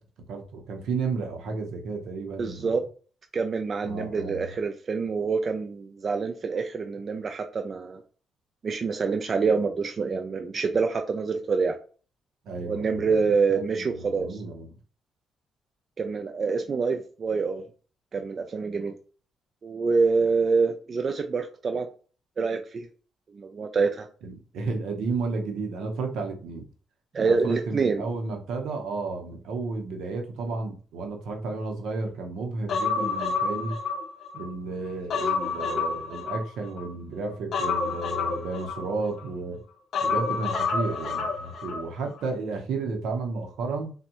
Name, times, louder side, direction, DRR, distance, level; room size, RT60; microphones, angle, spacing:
voice 1, 0.3-2.8 3.8-4.5 12.4-13.1 13.5-14.8 24.2-26.7 27.2-33.8 34.3-39.6 40.0-43.9, right 3 dB, 80° right, 4 dB, 0.6 m, -32 dB
voice 2, 2.4-2.8 3.3-8.0 8.6-11.8 12.6-14.4 16.0-17.6 18.1-19.0 19.6-21.9 22.4-22.9 23.3-24.1 27.1-28.1, right 4 dB, 45° right, 5 dB, 0.3 m, -26 dB
Human voice, 32.7-34.5 34.9-36.9 37.5-39.3 39.9-41.9 42.1-42.3, left 5 dB, 60° left, 0.5 m, -29 dB
3.4 x 2.1 x 2.8 m, 0.39 s
cardioid pair, 90°, 0 cm